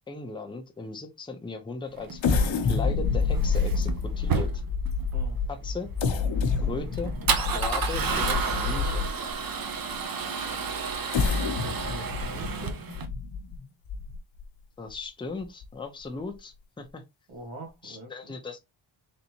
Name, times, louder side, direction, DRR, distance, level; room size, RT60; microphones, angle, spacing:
voice 1, 0.1-4.5 5.5-5.9 6.6-7.1 7.5-9.1 14.8-17.0 17.8-18.6, left 4 dB, 10° left, 0.5 m, -37 dB
Male speech man speaking / Car / Engine starting, 2.0-13.1, right 5 dB, 45° right, 0.6 m, -32 dB
sound 1, 2.2-9.3 9.9-10.0 10.9-14.4 14.9-15.0 15.4-15.6, left 4 dB, 65° left, 0.8 m, -28 dB
voice 2, 11.4-12.8 17.3-18.3, right 1 dB, 80° right, 1.9 m, -43 dB
4.1 x 3.3 x 2.8 m
wide cardioid pair, 180°, 48 cm